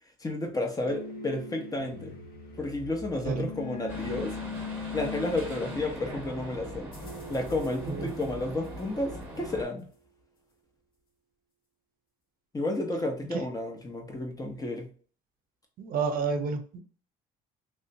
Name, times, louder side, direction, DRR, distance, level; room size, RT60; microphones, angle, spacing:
voice 1, 0.2-2.2 2.6-4.3 4.9-6.9 7.3-9.9 12.5-14.9, left 2 dB, 20° left, 3 dB, 0.9 m, -32 dB
sound 1, 0.9-9.9, left 4 dB, 60° left, 1.1 m, -42 dB
sound 2, 3.9-9.6, right 1 dB, 10° right, 1.5 m, -41 dB
voice 2, 15.8-16.8, right 5 dB, 60° right, 7 dB, 0.6 m, -30 dB
3.3 x 2.7 x 2.7 m, 0.42 s
cardioid pair, 110°, 17 cm